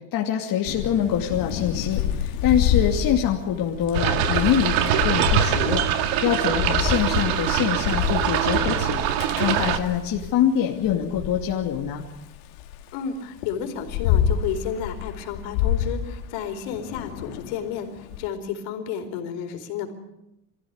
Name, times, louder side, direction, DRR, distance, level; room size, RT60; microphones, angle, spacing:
voice 1, 0.1-5.8 6.2-9.1 9.4-12.0, left 9 dB, 45° left, 0 dB, 2.6 m, -24 dB
Thunder / Rain, 0.6-10.4 10.8-12.8 13.4-18.2, left 9 dB, 85° left, 2.6 m, -28 dB
sound 1, 3.9-9.8, right 10 dB, 80° right, 2.3 m, -23 dB
voice 2, 12.9-19.9, left 7 dB, 70° left, 5 dB, 4.4 m, -31 dB
25.5 x 15.5 x 9.5 m, 0.90 s
cardioid pair, 135°, 48 cm